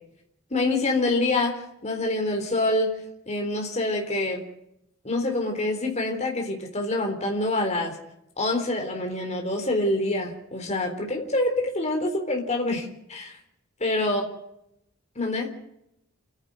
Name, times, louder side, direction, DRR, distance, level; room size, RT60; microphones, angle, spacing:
voice 1, 0.5-2.9 3.3-4.4 5.0-8.0 8.4-13.3 13.8-14.3 15.2-15.5, left 2 dB, 30° left, 3 dB, 3.7 m, -26 dB
29.0 x 10.5 x 9.6 m, 0.82 s
head